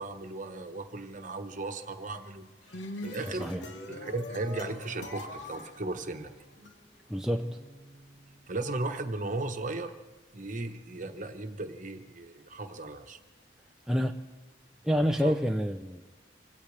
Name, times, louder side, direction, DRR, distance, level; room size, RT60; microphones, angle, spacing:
voice 1, 0.0-2.5 3.0-3.5 3.8-6.3 8.5-9.9 10.3-13.2 15.2-15.4, right 2 dB, 45° right, 6 dB, 1.1 m, -36 dB
sound 1, 2.4-6.7, left 1 dB, 75° left, 1.4 m, -42 dB
voice 2, 3.2-3.6 7.1-7.5 13.9-14.2 14.8-16.0, equal, ahead, 3 dB, 0.5 m, -28 dB
Guitar, 3.8-9.0, right 1 dB, 35° left, 4.5 m, -56 dB
25.5 x 17.0 x 3.3 m, 1.3 s
head